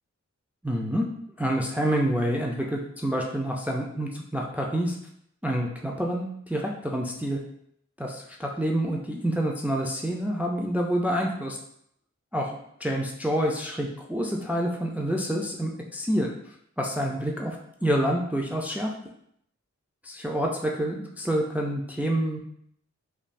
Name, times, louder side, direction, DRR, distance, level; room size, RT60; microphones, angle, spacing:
voice 1, 0.6-1.1 1.4-5.0 5.4-7.4 8.0-11.6 12.3-16.3 16.8-18.9 20.0-22.4, equal, 5° right, 0 dB, 0.3 m, -27 dB
3.2 x 2.3 x 2.5 m, 0.71 s
wide cardioid pair, 75°, 30 cm